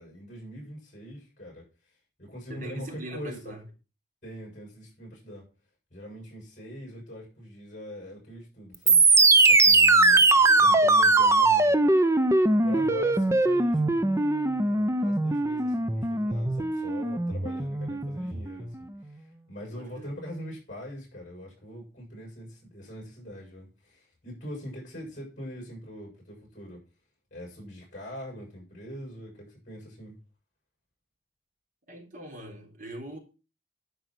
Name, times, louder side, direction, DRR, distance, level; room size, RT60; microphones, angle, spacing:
voice 1, 0.0-1.6 2.2-3.6 4.2-5.5 5.9-9.1 9.5-11.8 12.6-26.8 27.3-30.2, equal, 45° left, 7.5 m, -42 dB
voice 2, 2.5-3.6 10.3-10.7 12.7-13.0 19.7-20.1 31.9-33.2, right 1 dB, 50° right, 3.7 m, -42 dB
sound 1, 8.9-18.8, right 3 dB, 15° right, 0.7 m, -21 dB
12.0 x 5.6 x 6.1 m
head